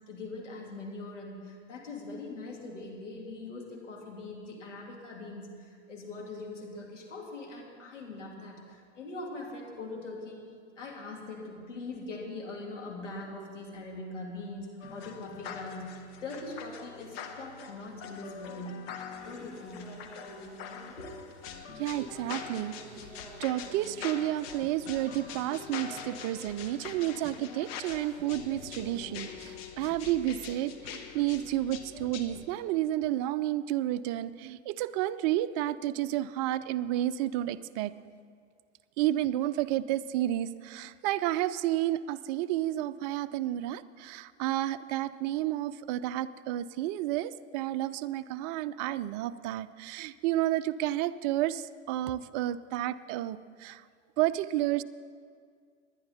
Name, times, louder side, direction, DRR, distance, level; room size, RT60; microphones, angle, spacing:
voice 1, 0.1-10.4 10.8-18.9 19.2-20.0 20.4-20.5 20.9-21.1, left 2 dB, 80° left, -1 dB, 3.1 m, -42 dB
sound 1, 14.8-32.5, left 7 dB, 55° left, 1.2 m, -44 dB
sound 2, 19.2-29.6, right 1 dB, ahead, 3.5 m, -51 dB
voice 2, 21.8-22.8 23.4-37.9 39.0-53.8 54.2-54.8, right 14 dB, 35° right, 13 dB, 0.4 m, -31 dB
20.0 x 10.5 x 4.2 m, 2.1 s
figure-of-eight pair, 100°, 36 cm